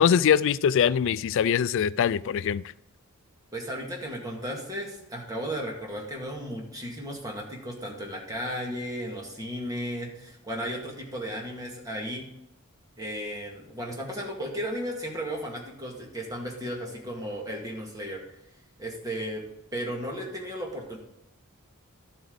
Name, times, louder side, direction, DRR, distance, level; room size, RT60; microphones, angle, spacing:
voice 1, 0.0-2.6, left 8 dB, 60° left, 0.3 m, -22 dB
voice 2, 3.5-12.2 13.0-18.2 18.8-19.4 19.7-21.0, equal, 15° right, 2.1 m, -35 dB
12.0 x 8.2 x 4.0 m
head